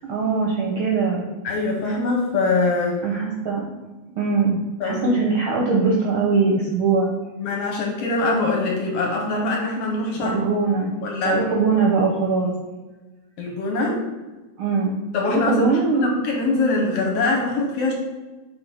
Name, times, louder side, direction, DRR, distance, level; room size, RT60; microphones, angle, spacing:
voice 1, 0.0-1.2 3.0-3.7 4.2-7.1 10.2-10.9 11.2-12.5 14.6-14.9 15.3-16.1, right 4 dB, 70° right, -3 dB, 1.2 m, -21 dB
voice 2, 1.4-3.0 4.8-5.1 7.4-10.4 11.0-11.4 13.4-14.0 15.1-15.6 15.9-17.9, left 3 dB, 70° left, 1 dB, 1.7 m, -23 dB
4.8 x 3.8 x 5.4 m, 1.2 s
omnidirectional pair, 3.4 m